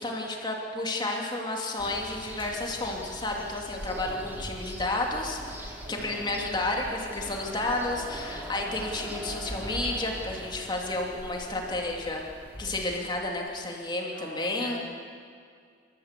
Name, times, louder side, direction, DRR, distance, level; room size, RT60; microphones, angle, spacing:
voice 1, 0.0-12.2 12.6-14.8, left 2 dB, 25° left, 0 dB, 2.7 m, -31 dB
sound 1, 1.8-13.3, equal, 10° right, 2.7 m, -41 dB
voice 2, 3.9-4.4 5.8-6.2 14.1-14.8, right 1 dB, 75° right, -8 dB, 6.6 m, -42 dB
28.0 x 13.5 x 8.3 m, 2.2 s
head